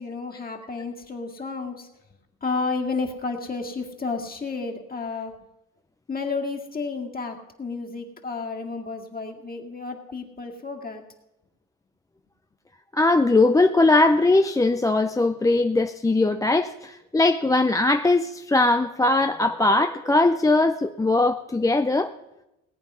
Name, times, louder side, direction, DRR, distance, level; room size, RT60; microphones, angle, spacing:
voice 1, 0.0-1.9 2.4-5.3 6.1-11.0, left 4 dB, 30° left, 2.2 m, -31 dB
voice 2, 12.9-22.1, left 2 dB, 10° left, 0.4 m, -20 dB
18.0 x 8.8 x 5.6 m
cardioid pair, 90°, 30 cm